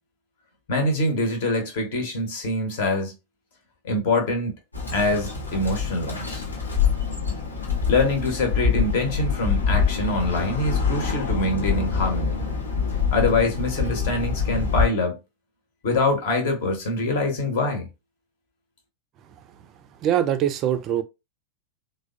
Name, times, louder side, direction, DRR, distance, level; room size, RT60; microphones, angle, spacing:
voice 1, 0.7-3.1 3.8-4.5 4.9-6.4 7.9-12.4 12.9-15.2 15.8-17.9, left 2 dB, 50° left, 0.9 m, -24 dB
Bird, 4.7-14.9, left 6 dB, 80° left, 0.8 m, -25 dB
voice 2, 20.0-21.0, right 10 dB, 35° right, 0.3 m, -22 dB
3.3 x 2.1 x 2.5 m
figure-of-eight pair, 90°, 0 cm